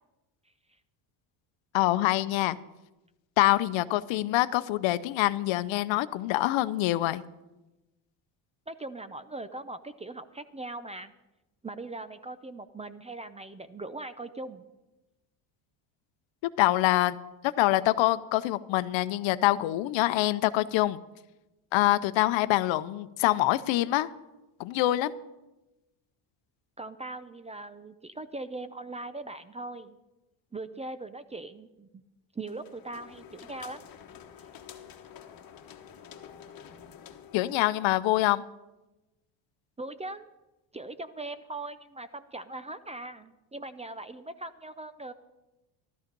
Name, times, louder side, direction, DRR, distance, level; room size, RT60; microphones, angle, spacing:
voice 1, 1.7-2.6 3.4-7.2 16.6-17.2 17.4-21.0 21.7-24.1 24.6-25.1 37.3-38.4, left 16 dB, 70° left, 14 dB, 0.8 m, -25 dB
voice 2, 8.7-11.1 11.6-14.6 26.8-30.0 30.5-32.0 32.3-33.8 39.8-40.3 40.7-45.1, right 2 dB, 15° right, 12 dB, 0.5 m, -40 dB
sound 1, 32.5-37.9, left 8 dB, 45° left, 1.3 m, -49 dB
13.0 x 13.0 x 5.3 m, 1.0 s
cardioid pair, 115°, 47 cm